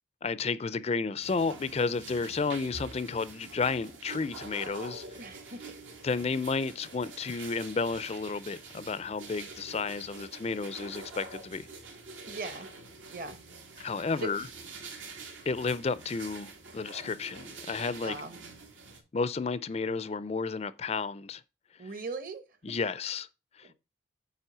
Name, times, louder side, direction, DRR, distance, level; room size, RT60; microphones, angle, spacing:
voice 1, 0.2-5.0 6.0-11.7 13.8-14.5 15.5-18.1 19.1-21.4 22.6-23.3 23.5-23.7, left 4 dB, 30° left, 0.4 m, -32 dB
sound 1, 1.2-19.0, right 3 dB, 80° right, 2.2 m, -46 dB
voice 2, 5.1-5.6 12.2-12.7 13.1-13.4 14.2-14.3 18.0-18.3 21.8-22.4 23.6-23.7, right 3 dB, 45° right, 1.1 m, -38 dB
9.1 x 3.4 x 6.7 m
head